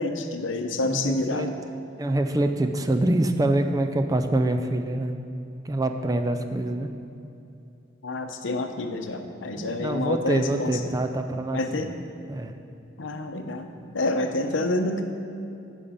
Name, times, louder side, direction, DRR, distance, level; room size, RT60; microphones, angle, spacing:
voice 1, 0.0-1.5 8.0-10.7 11.5-11.9 13.0-13.7 13.9-15.0, left 2 dB, 75° left, 6 dB, 0.7 m, -28 dB
voice 2, 0.8-1.6 2.0-5.2 5.6-6.9 9.6-11.9 12.3-12.5, right 1 dB, 20° right, 6 dB, 0.4 m, -25 dB
8.8 x 5.4 x 7.0 m, 2.7 s
head